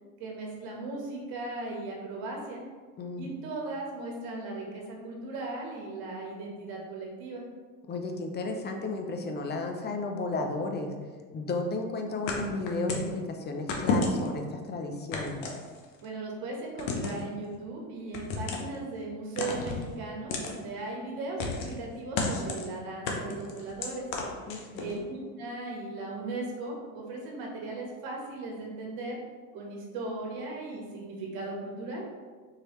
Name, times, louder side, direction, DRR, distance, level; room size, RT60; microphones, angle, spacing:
voice 1, 0.2-2.6 3.2-7.4 16.0-24.1 24.7-29.2 29.5-32.0, right 2 dB, 60° right, -1 dB, 1.3 m, -37 dB
voice 2, 3.0-3.3 7.9-10.9 11.3-15.4 24.5-25.0, left 3 dB, 25° left, 4 dB, 0.6 m, -33 dB
sound 1, 12.3-13.1 13.7-14.4 15.1-16.1 16.8-17.3 18.1-18.8 19.4-19.9 20.3-20.6 21.4-21.8 22.2-22.7 23.1-24.9, left 3 dB, 75° left, 0.9 m, -31 dB
4.6 x 3.1 x 3.1 m, 1.5 s
supercardioid pair, 95°, 42 cm